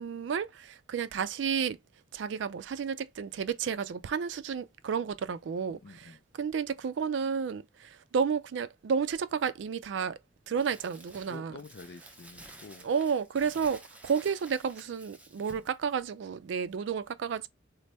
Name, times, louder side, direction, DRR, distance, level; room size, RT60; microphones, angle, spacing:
voice 1, 0.0-1.8 2.1-6.1 6.4-10.2 10.5-11.5 12.8-17.5, right 6 dB, 80° right, 0.3 m, -31 dB
voice 2, 5.7-6.2 11.3-12.9, left 3 dB, 55° left, 0.4 m, -48 dB
Crumpling crinkling, 10.6-15.8, right 1 dB, 10° right, 0.5 m, -52 dB
3.3 x 2.0 x 4.1 m
head